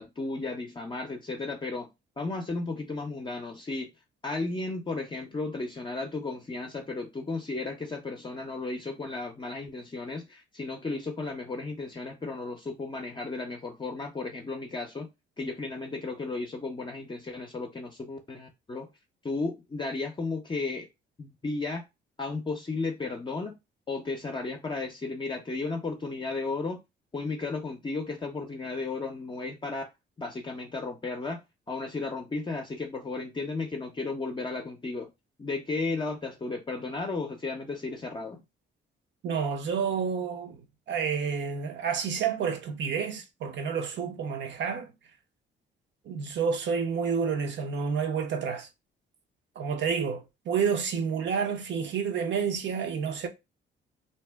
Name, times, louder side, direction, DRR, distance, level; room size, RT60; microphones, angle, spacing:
voice 1, 0.0-1.9 2.2-3.9 4.2-15.1 15.4-18.9 19.2-20.9 21.2-21.8 22.2-23.5 23.9-26.8 27.1-29.8 30.2-31.4 31.7-35.1 35.4-38.4, left 3 dB, 25° left, 0.5 m, -34 dB
voice 2, 39.2-40.6 40.9-44.9 46.1-48.7 49.6-53.3, right 6 dB, 65° right, 0.7 m, -29 dB
2.7 x 2.1 x 3.3 m
cardioid pair, 90°, 20 cm